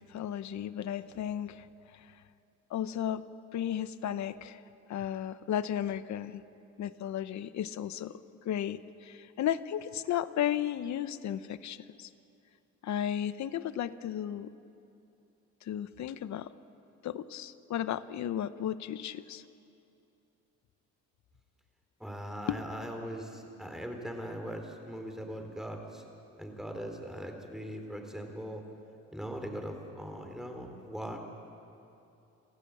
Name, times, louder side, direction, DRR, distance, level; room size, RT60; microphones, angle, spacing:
voice 1, 0.0-1.7 1.9-2.1 2.7-3.2 3.5-4.6 4.9-6.4 6.8-8.2 8.4-12.1 12.8-14.5 15.6-16.5 17.0-19.4 22.5-22.6, left 10 dB, 65° left, 14 dB, 0.9 m, -34 dB
voice 2, 22.0-26.0 26.4-28.6 29.1-31.2, equal, ahead, 3 dB, 3.7 m, -40 dB
27.5 x 15.0 x 8.6 m, 2.7 s
cardioid pair, 90°, 30 cm